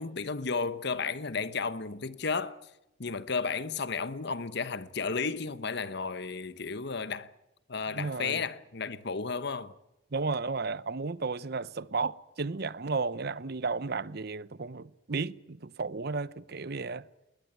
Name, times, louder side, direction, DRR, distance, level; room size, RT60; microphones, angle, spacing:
voice 1, 0.0-2.7 3.0-7.3 7.7-9.7, left 4 dB, 55° left, 1.0 m, -33 dB
voice 2, 7.9-8.4 10.1-17.0, right 4 dB, 50° right, 0.8 m, -33 dB
21.0 x 20.5 x 9.5 m
head